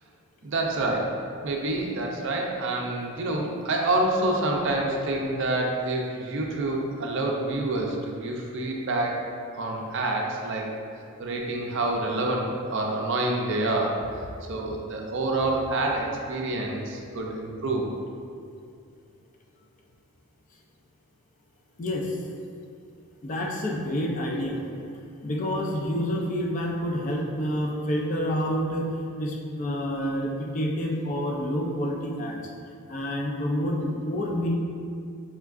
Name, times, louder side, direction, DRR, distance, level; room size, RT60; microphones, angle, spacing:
voice 1, 0.4-9.2 9.5-10.7 11.2-14.0 14.5-17.9, right 2 dB, 55° right, 0 dB, 0.4 m, -27 dB
voice 2, 21.8-22.2 23.2-24.6 25.2-32.4 32.9-34.6, equal, 35° left, -1 dB, 0.3 m, -28 dB
4.3 x 3.4 x 2.4 m, 2.3 s
head